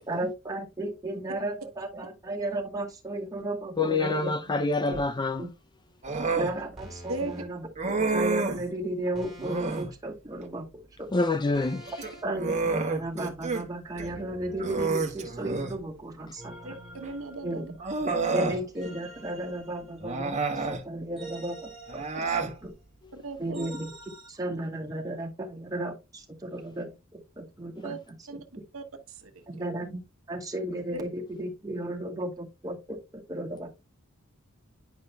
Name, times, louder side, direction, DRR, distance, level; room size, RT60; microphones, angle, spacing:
voice 1, 0.1-4.3 4.9-5.0 5.4-5.5 6.4-11.1 12.2-16.6 17.4-17.6 18.0-22.7 23.4-28.0 28.3-28.4 29.5-30.0 30.3-33.7, right 1 dB, 15° right, 2.2 m, -34 dB
voice 2, 3.8-5.4 11.1-11.9, left 3 dB, 20° left, 0.4 m, -26 dB
sound 1, 4.9-5.2 6.8-7.5 9.1-10.0 11.5-12.3 14.0-15.4 16.4-17.9 18.7-20.4 21.2-22.7 23.5-24.3, right 1 dB, ahead, 3.8 m, -47 dB
Human voice, 6.0-6.5 7.8-8.7 9.4-9.9 11.9-13.6 14.0-14.1 14.6-15.8 17.0-17.1 17.8-18.6 20.0-20.8 21.9-22.5, right 3 dB, 35° right, 1.4 m, -29 dB
voice 3, 16.6-17.7 23.1-23.7 27.8-28.0 28.3-28.4 28.7-29.4 30.9-31.0, right 2 dB, 80° right, 1.3 m, -37 dB
10.5 x 5.4 x 2.2 m
head